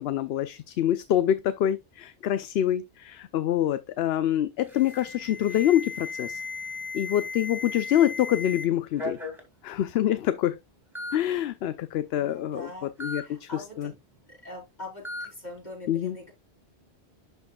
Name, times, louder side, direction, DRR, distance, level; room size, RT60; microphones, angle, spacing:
voice 1, 0.0-6.4 6.9-9.2 9.6-10.6 11.1-12.7 13.0-13.5 13.8-13.9 15.9-16.2, left 11 dB, 70° left, 0.8 m, -26 dB
Alarm, 4.7-8.7 9.0-9.4 10.2-10.3 11.0-11.2 13.0-13.2 15.0-15.3, left 3 dB, ahead, 2.3 m, -36 dB
voice 2, 12.1-14.0 14.3-16.3, left 1 dB, 40° left, 4.7 m, -43 dB
11.5 x 4.7 x 2.3 m
omnidirectional pair, 1.1 m